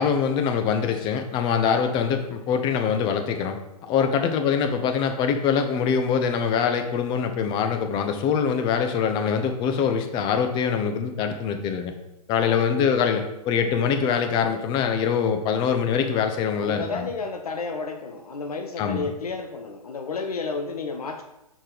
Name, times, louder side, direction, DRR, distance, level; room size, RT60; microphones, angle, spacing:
voice 1, 0.0-3.6 3.9-11.9 12.3-17.1 18.8-19.1, left 7 dB, 25° left, 6 dB, 0.8 m, -24 dB
voice 2, 16.5-21.2, left 4 dB, 70° left, 5 dB, 0.8 m, -32 dB
6.1 x 4.3 x 5.0 m, 0.92 s
hypercardioid pair, 125°, 20 cm